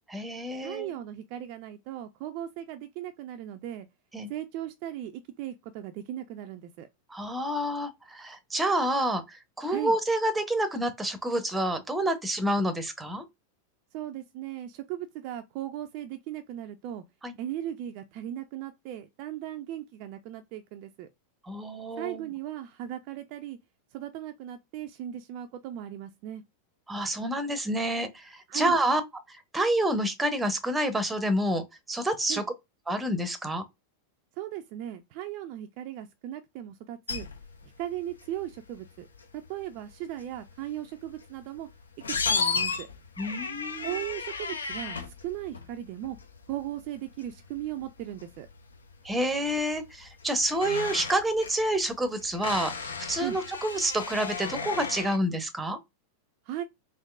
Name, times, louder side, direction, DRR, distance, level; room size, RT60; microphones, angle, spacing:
voice 1, 0.1-0.9 4.1-4.3 7.1-13.3 17.2-17.3 21.5-22.3 26.9-29.0 29.3-32.4 32.9-33.6 43.2-44.0 49.0-55.8, right 1 dB, 10° right, 0.7 m, -28 dB
voice 2, 0.6-3.9 4.3-6.9 9.7-9.9 13.9-17.0 17.4-21.1 22.0-23.6 23.9-26.4 28.5-28.8 32.3-32.4 34.4-37.3 37.8-39.1 39.5-41.7 42.1-42.9 43.8-46.2 46.5-48.5 53.2-53.4 56.5-56.6, right 12 dB, 45° right, 0.3 m, -37 dB
sound 1, 37.1-55.2, left 5 dB, 75° left, 0.5 m, -36 dB
3.6 x 2.5 x 2.3 m
figure-of-eight pair, 90°, 0 cm